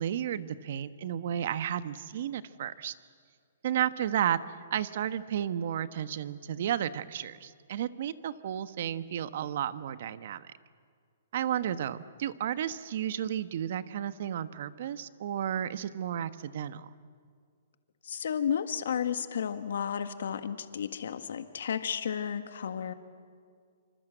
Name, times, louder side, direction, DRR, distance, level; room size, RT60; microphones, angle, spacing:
voice 1, 0.0-2.9 3.6-4.4 4.7-10.5 11.3-16.9, right 10 dB, 55° right, 13 dB, 1.2 m, -32 dB
voice 2, 18.0-22.9, left 8 dB, 75° left, 9 dB, 1.7 m, -32 dB
26.5 x 25.5 x 8.0 m, 2.1 s
hypercardioid pair, 150°, 0 cm